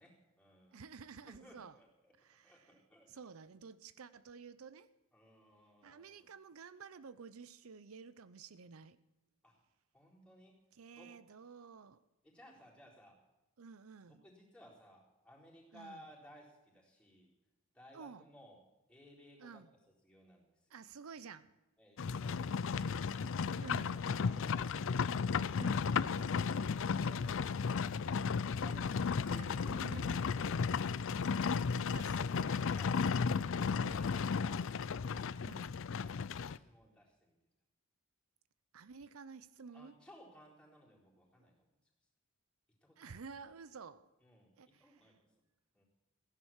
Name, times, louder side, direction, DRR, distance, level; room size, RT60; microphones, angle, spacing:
voice 1, 0.0-0.8 1.3-2.1 2.4-3.1 5.1-6.3 9.4-9.6 9.9-10.6 10.9-11.1 12.2-13.2 14.1-17.3 17.7-18.6 18.9-19.6 20.0-20.4 24.1-24.8 32.7-33.1 33.7-34.7 36.0-37.3 39.7-41.5 42.8-43.2 44.2-45.1 45.7-45.8, equal, 5° left, -3 dB, 4.1 m, -59 dB
voice 2, 0.7-1.8 2.2-2.7 3.1-4.9 5.8-9.0 10.7-12.0 13.6-14.2 15.7-16.0 17.9-18.2 19.4-19.7 20.7-21.5 23.6-24.0 25.5-25.9 29.3-30.1 31.7-32.7 35.4-35.8 38.7-40.0 43.0-44.1 44.6-45.1, right 5 dB, 75° right, 15 dB, 0.6 m, -52 dB
Livestock farm animals working animals, 22.0-36.6, left 5 dB, 65° left, 0.5 m, -34 dB
15.5 x 11.0 x 7.3 m, 1.0 s
head